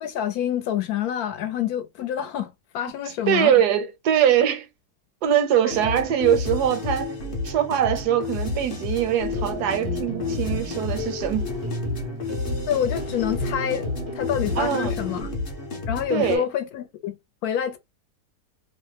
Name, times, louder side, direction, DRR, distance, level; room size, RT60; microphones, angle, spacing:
voice 1, 0.0-3.5 12.7-13.9 14.1-15.3 15.9-17.2 17.4-17.8, left 10 dB, 70° left, 1.1 m, -27 dB
voice 2, 3.3-4.7 5.2-7.2 7.4-11.5 14.6-14.9 16.1-16.4, right 9 dB, 80° right, 1.2 m, -22 dB
sound 1, 5.7-16.4, left 3 dB, 45° left, 0.7 m, -31 dB
sound 2, 9.3-15.2, left 1 dB, 35° right, 0.5 m, -33 dB
2.9 x 2.1 x 3.2 m
omnidirectional pair, 1.7 m